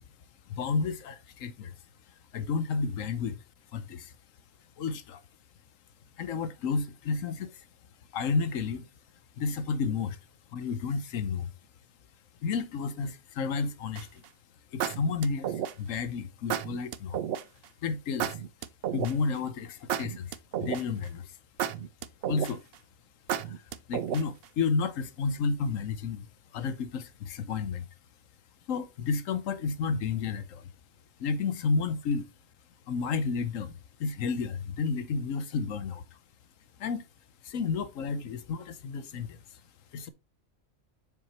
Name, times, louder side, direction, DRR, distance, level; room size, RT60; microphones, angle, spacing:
voice 1, 0.5-1.7 2.3-3.4 3.7-4.1 4.8-5.2 6.2-7.5 8.1-8.9 9.4-10.2 10.5-11.5 12.4-14.2 14.7-17.2 17.8-18.4 18.9-21.3 22.3-22.6 23.4-23.5 23.9-26.3 26.5-27.9 28.7-30.7 31.2-32.3 32.9-33.7 34.0-36.0 36.8-37.0 37.4-39.4 39.9-40.1, left 5 dB, 75° left, 1.1 m, -31 dB
sound 1, 14.0-14.3 14.8-16.0 16.5-17.4 18.2-19.4 19.9-21.0 21.6-22.7 23.3-24.4, right 10 dB, 60° right, 0.6 m, -32 dB
7.4 x 5.8 x 3.0 m
omnidirectional pair, 1.4 m